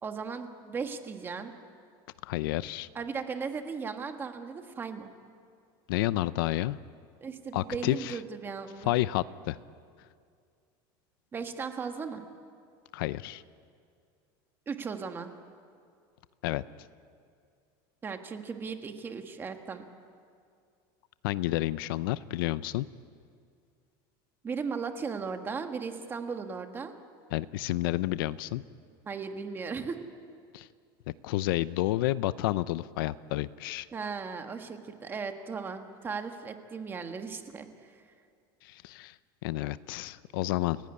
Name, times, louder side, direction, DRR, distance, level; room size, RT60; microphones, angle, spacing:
voice 1, 0.0-1.5 2.9-5.1 7.2-8.9 11.3-12.2 14.7-15.3 18.0-19.8 24.4-26.9 29.0-30.0 33.9-38.0, right 5 dB, 20° right, 6 dB, 1.5 m, -37 dB
voice 2, 2.2-2.9 5.9-6.8 7.5-8.2 8.8-9.6 12.9-13.4 16.4-16.6 21.2-22.9 27.3-28.6 30.5-30.7 31.2-33.9 38.6-39.1 39.4-40.8, left 16 dB, 85° left, 16 dB, 0.7 m, -30 dB
30.0 x 16.0 x 9.7 m, 2.3 s
cardioid pair, 160°, 11 cm